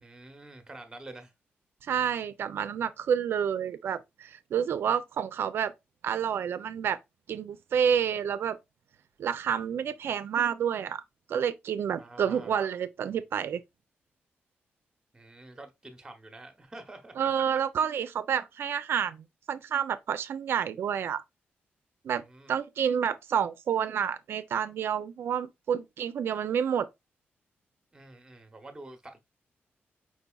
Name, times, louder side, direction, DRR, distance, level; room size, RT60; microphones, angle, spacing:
voice 1, 0.0-1.3 12.0-12.5 15.1-17.2 22.1-22.5 27.9-29.2, right 2 dB, 15° right, 0.8 m, -47 dB
voice 2, 1.8-5.7 6.0-7.0 7.3-8.6 9.2-11.0 11.3-13.6 17.2-21.2 22.0-22.2 22.5-26.9, right 8 dB, 70° right, 0.4 m, -29 dB
5.0 x 4.0 x 2.3 m
wide cardioid pair, 170°, 4 cm